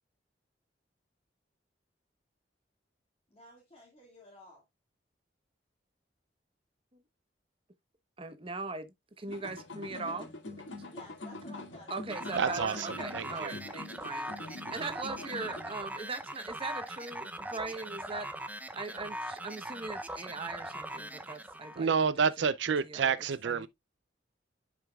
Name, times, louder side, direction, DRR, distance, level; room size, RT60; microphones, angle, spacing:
voice 1, 3.3-4.6 10.1-10.2 10.9-12.0, left 1 dB, 35° left, 2.1 m, -53 dB
voice 2, 8.2-10.3 11.9-18.3 18.7-22.1 22.4-22.5 22.8-23.1 23.4-23.7, right 3 dB, 30° right, 1.0 m, -40 dB
sound 1, 9.3-15.8, left 2 dB, 90° left, 2.0 m, -44 dB
sound 2, 12.1-21.8, right 1 dB, 10° right, 0.6 m, -41 dB
voice 3, 12.4-12.9 13.1-13.5 21.8-23.7, right 6 dB, 75° right, 0.5 m, -29 dB
11.0 x 5.1 x 2.3 m
head